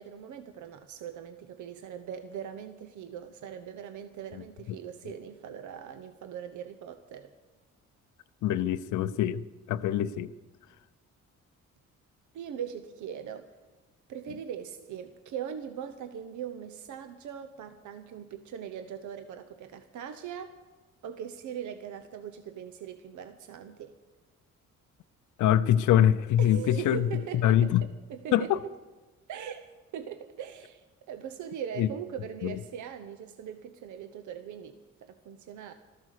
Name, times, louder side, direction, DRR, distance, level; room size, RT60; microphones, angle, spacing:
voice 1, 0.0-7.3 12.3-13.5 14.1-20.6 21.0-23.9 26.4-28.5 29.3-29.7 29.9-35.7, right 8 dB, 75° right, 8 dB, 0.9 m, -40 dB
voice 2, 8.4-9.4 9.7-10.3 25.4-27.1 27.4-27.9 28.3-28.6 31.8-31.9 32.4-32.6, left 11 dB, 80° left, 13 dB, 0.6 m, -24 dB
14.5 x 13.5 x 6.5 m, 1.2 s
cardioid pair, 90°, 30 cm